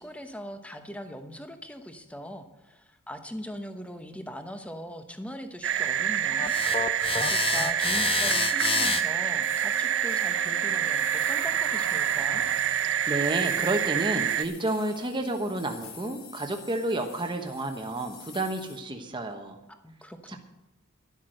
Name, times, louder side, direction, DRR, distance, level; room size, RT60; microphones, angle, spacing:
voice 1, 0.0-12.4 19.7-20.4, equal, 5° left, 7 dB, 1.0 m, -41 dB
sound 1, 5.6-14.4, right 9 dB, 55° right, 0.7 m, -27 dB
sound 2, 6.4-11.5, left 6 dB, 25° left, 0.6 m, -31 dB
sound 3, 9.0-18.8, left 7 dB, 65° left, 1.8 m, -48 dB
voice 2, 13.1-19.6 20.3-20.4, right 2 dB, 20° right, 4 dB, 1.1 m, -30 dB
12.0 x 10.5 x 6.5 m, 0.98 s
head